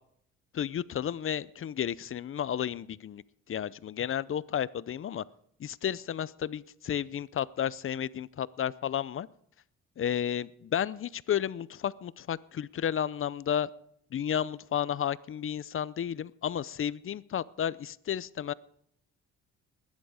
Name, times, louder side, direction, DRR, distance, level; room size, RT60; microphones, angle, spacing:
voice 1, 0.5-3.2 3.5-5.2 5.6-9.3 10.0-13.7 14.1-18.5, left 9 dB, 45° left, 19 dB, 0.6 m, -32 dB
20.5 x 10.5 x 4.9 m, 0.69 s
cardioid pair, 90°, 30 cm